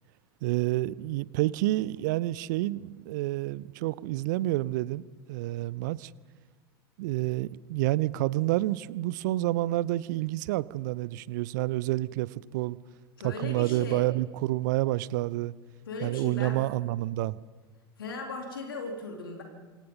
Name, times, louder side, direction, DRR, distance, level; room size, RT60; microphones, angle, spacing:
voice 1, 0.4-6.1 7.0-12.8 13.2-15.5 16.0-17.4, right 17 dB, 50° right, 21 dB, 0.7 m, -29 dB
voice 2, 13.2-14.1 15.9-16.6 18.0-19.4, left 3 dB, 70° left, 2 dB, 4.1 m, -37 dB
29.5 x 26.0 x 5.6 m, 1.4 s
figure-of-eight pair, 85°, 12 cm